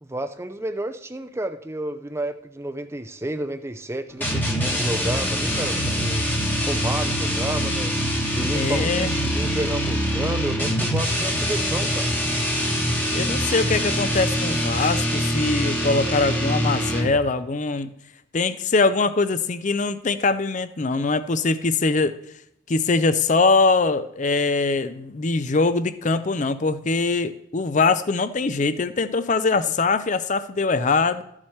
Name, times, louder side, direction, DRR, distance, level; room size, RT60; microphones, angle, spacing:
voice 1, 0.0-6.3 6.6-7.9 8.3-12.1, right 1 dB, 15° right, 8 dB, 0.5 m, -31 dB
sound 1, 4.2-17.3, equal, 10° left, 1.2 m, -24 dB
voice 2, 8.5-9.2 13.1-17.9 18.3-22.1 22.7-31.2, left 3 dB, 35° left, 12 dB, 0.5 m, -22 dB
13.5 x 7.3 x 3.2 m, 0.78 s
head